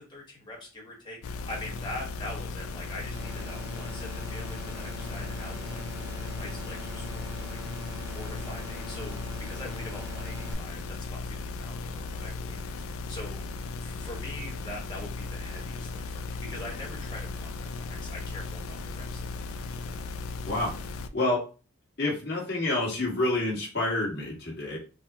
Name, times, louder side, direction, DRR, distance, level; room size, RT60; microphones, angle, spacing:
voice 1, 0.0-7.6 8.1-13.5 13.8-19.9, left 1 dB, 20° left, -2 dB, 1.2 m, -43 dB
sound 1, 1.2-21.1, left 3 dB, 70° left, 0.4 m, -37 dB
sound 2, 3.1-10.5, equal, 50° right, 0.7 m, -43 dB
voice 2, 22.0-24.8, left 2 dB, 50° left, -3 dB, 1.5 m, -28 dB
5.2 x 2.1 x 2.8 m, 0.35 s
head